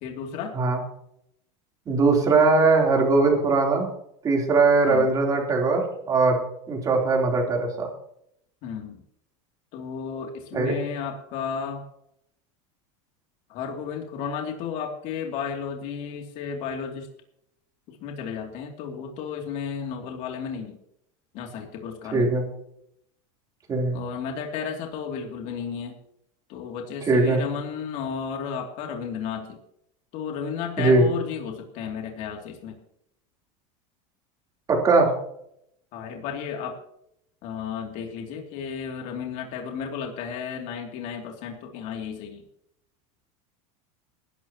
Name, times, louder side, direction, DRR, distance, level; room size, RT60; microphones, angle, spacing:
voice 1, 0.0-0.6 4.8-5.1 8.6-9.0 9.7-11.8 13.5-17.1 17.9-20.8 21.3-22.3 23.9-26.0 26.5-29.6 30.1-32.8 35.9-36.8 37.4-42.4, left 6 dB, 50° left, 2 dB, 2.8 m, -33 dB
voice 2, 1.9-3.9 4.2-6.4 6.7-7.9 10.5-10.8 22.1-22.4 23.7-24.0 27.1-27.4 30.8-31.1 34.7-35.2, right 3 dB, 20° right, 0 dB, 3.6 m, -20 dB
19.5 x 12.0 x 3.0 m, 0.73 s
supercardioid pair, 160°, 16 cm